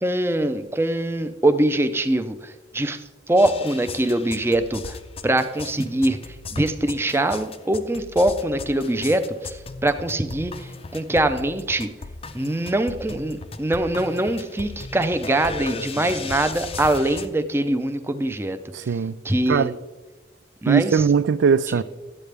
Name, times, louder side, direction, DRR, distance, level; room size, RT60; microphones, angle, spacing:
voice 1, 0.0-3.0 3.3-5.0 5.2-6.2 6.5-11.9 12.3-18.6 19.2-19.7 20.6-21.0, right 1 dB, 15° right, 0.5 m, -23 dB
sound 1, 3.4-17.3, left 3 dB, 30° left, 0.5 m, -37 dB
voice 2, 18.7-19.2 19.5-19.7 20.7-21.8, right 6 dB, 80° right, 0.4 m, -19 dB
12.0 x 8.3 x 3.4 m
head